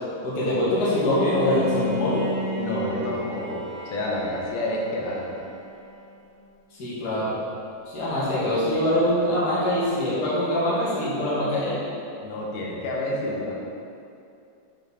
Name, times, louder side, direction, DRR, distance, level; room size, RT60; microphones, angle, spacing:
voice 1, 0.2-2.2 6.8-7.3 7.9-11.8, left 1 dB, 40° left, -9 dB, 1.8 m, -23 dB
Bowed string instrument, 1.1-6.1, left 2 dB, 50° right, 2.5 m, -33 dB
voice 2, 2.4-5.4 12.2-13.5, left 1 dB, 85° left, -3 dB, 2.4 m, -29 dB
8.0 x 4.0 x 4.1 m, 2.6 s
omnidirectional pair, 3.7 m